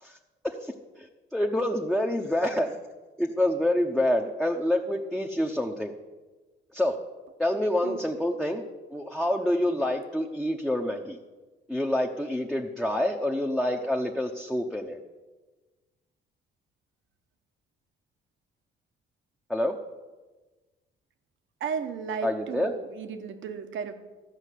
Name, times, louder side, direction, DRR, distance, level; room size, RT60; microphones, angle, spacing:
voice 1, 0.4-2.8 3.2-5.9 6.7-7.0 7.4-8.7 8.9-11.2 11.7-15.0 19.5-19.8 22.2-22.7, left 1 dB, ahead, 1 dB, 0.8 m, -27 dB
voice 2, 21.6-23.9, right 6 dB, 75° right, 8 dB, 1.1 m, -34 dB
12.5 x 5.2 x 8.2 m, 1.2 s
cardioid pair, 90°, 20 cm